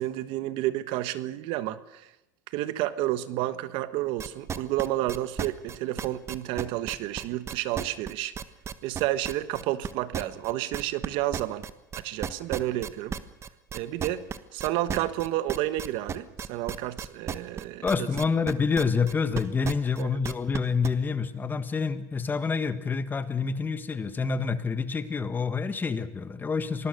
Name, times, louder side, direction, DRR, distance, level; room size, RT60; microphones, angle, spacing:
voice 1, 0.0-2.1 2.5-8.3 8.8-11.6 11.9-13.2 13.7-14.3 14.5-18.1 20.0-20.2, right 15 dB, 65° right, 14 dB, 1.3 m, -30 dB
sound 1, 4.2-11.1 11.3-20.9, right 7 dB, 30° right, 1.3 m, -34 dB
voice 2, 17.8-26.9, left 5 dB, 20° left, 11 dB, 1.6 m, -27 dB
25.5 x 20.0 x 6.7 m, 0.89 s
supercardioid pair, 115°, 9 cm